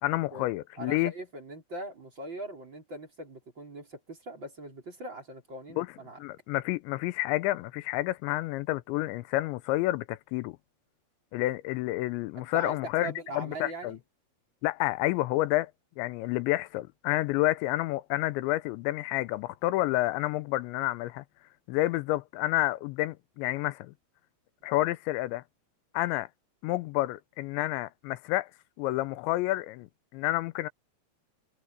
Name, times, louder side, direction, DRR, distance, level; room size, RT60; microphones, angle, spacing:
voice 1, 0.0-1.1 5.8-5.9 6.2-10.6 11.3-14.0 14.6-15.7 16.0-21.2 21.7-23.9 24.6-25.4 25.9-26.3 26.6-28.5 28.8-30.7, left 17 dB, 90° left, 3.0 m, -29 dB
voice 2, 0.8-6.2 12.4-14.0 24.7-24.8, right 2 dB, 25° right, 5.2 m, -41 dB
omnidirectional pair, 5.1 m